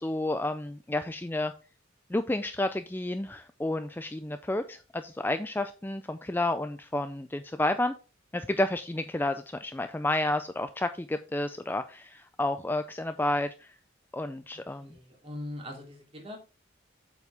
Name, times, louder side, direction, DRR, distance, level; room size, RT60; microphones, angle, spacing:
voice 1, 0.0-1.5 2.1-7.9 8.3-13.7 14.1-14.9, left 1 dB, 10° left, 9 dB, 0.4 m, -31 dB
voice 2, 14.8-16.4, left 1 dB, 30° right, 1 dB, 3.0 m, -41 dB
8.1 x 7.2 x 3.4 m, 0.33 s
head